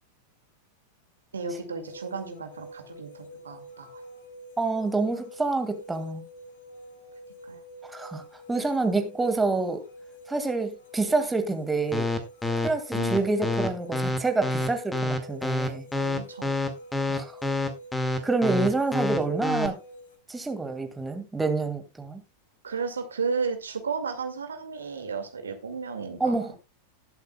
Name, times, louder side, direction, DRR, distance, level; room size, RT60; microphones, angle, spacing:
voice 1, 1.3-4.0 7.5-7.6 13.0-13.2 15.9-16.5 22.6-26.4, right 5 dB, 70° right, 2.2 m, -33 dB
sound 1, 1.8-20.2, equal, 60° left, 3.6 m, -46 dB
voice 2, 4.6-6.2 7.8-8.2 8.5-9.8 10.3-12.1 12.6-15.9 17.1-17.4 18.2-19.8 20.3-22.2 26.2-26.6, right 3 dB, 10° right, 2.0 m, -27 dB
sound 2, 11.9-19.7, left 2 dB, 10° left, 2.0 m, -27 dB
19.5 x 8.1 x 2.3 m
figure-of-eight pair, 90°, 0 cm